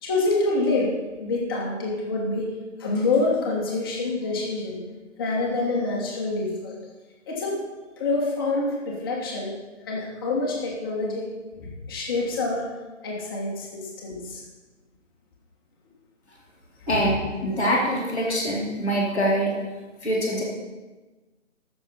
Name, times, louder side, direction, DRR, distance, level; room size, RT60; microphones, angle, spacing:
voice 1, 0.0-2.5 2.8-4.7 5.2-6.7 7.3-7.6 8.0-9.5 9.8-11.3 11.6-12.7 13.0-14.4 16.8-17.0, left 2 dB, 20° left, -2 dB, 1.6 m, -26 dB
voice 2, 17.4-19.5 20.0-20.4, equal, 5° right, -15 dB, 0.9 m, -24 dB
13.0 x 6.9 x 5.7 m, 1.2 s
figure-of-eight pair, 165°, 38 cm